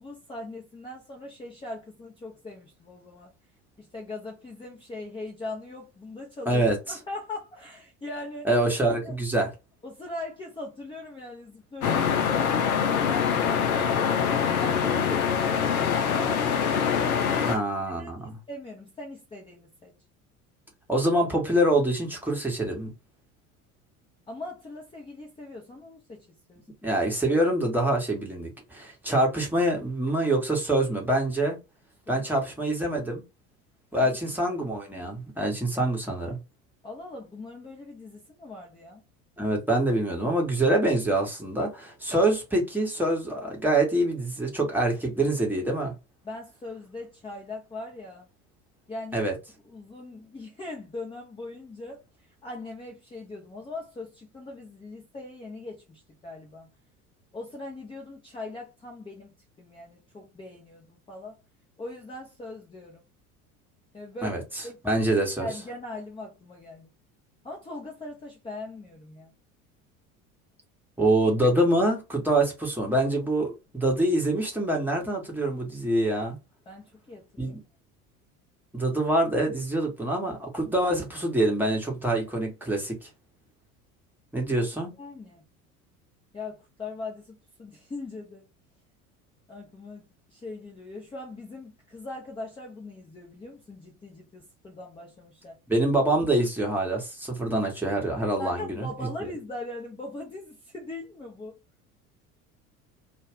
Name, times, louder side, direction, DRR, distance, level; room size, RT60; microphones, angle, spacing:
voice 1, 0.0-3.3 3.8-6.6 6.9-8.5 9.0-9.2 9.8-14.3 14.6-16.6 17.3-17.6 17.9-19.9 24.3-26.7 32.1-32.2 33.9-34.1 36.8-39.0 46.2-48.3 48.9-49.2 49.6-56.7 57.3-61.4 61.8-63.0 63.9-64.8 65.1-66.9 67.4-69.3 76.7-77.5 85.0-85.4 86.3-88.5 89.5-95.6 98.2-101.6, left 2 dB, 10° left, 0.7 m, -40 dB
voice 2, 6.5-7.0 8.4-9.5 17.5-18.4 20.9-22.9 26.8-31.6 32.1-33.2 33.9-36.4 39.4-45.9 49.1-49.3 64.2-64.4 64.8-65.5 71.0-76.4 77.4-77.6 78.7-83.1 84.3-84.9 95.7-98.9, right 1 dB, 5° right, 1.1 m, -25 dB
sound 1, 11.8-17.6, left 7 dB, 75° left, 0.6 m, -24 dB
2.4 x 2.4 x 3.5 m
figure-of-eight pair, 70°, 43 cm